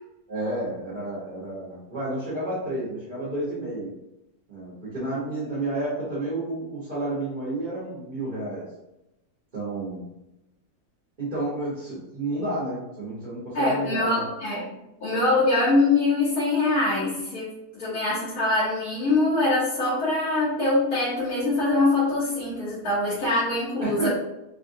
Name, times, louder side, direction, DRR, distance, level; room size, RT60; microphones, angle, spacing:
voice 1, 0.3-3.9 4.5-8.6 9.5-10.0 11.2-14.2 23.8-24.1, right 2 dB, 35° right, -10 dB, 1.0 m, -31 dB
voice 2, 13.5-24.1, left 2 dB, 65° left, -9 dB, 1.3 m, -24 dB
3.5 x 2.5 x 2.6 m, 0.90 s
omnidirectional pair, 1.8 m